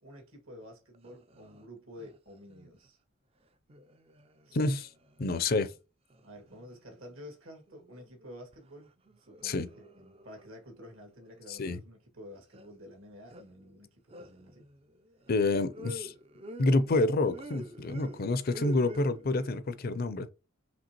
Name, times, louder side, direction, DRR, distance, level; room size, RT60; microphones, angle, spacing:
voice 1, 0.0-3.0 4.4-4.6 6.2-14.7, equal, 70° right, 1.9 m, -50 dB
sound 1, 0.6-0.7 0.9-1.7 2.0-2.9 3.7-5.8 6.1-7.3 7.7-8.7 9.0-11.4 12.5-12.7 13.3-13.7 14.1-19.5, equal, 25° right, 0.4 m, -49 dB
voice 2, 4.5-4.9 5.2-5.7 9.4-9.7 11.5-11.8 15.3-16.1 16.6-20.3, left 2 dB, 45° left, 0.5 m, -28 dB
5.1 x 3.2 x 2.9 m
head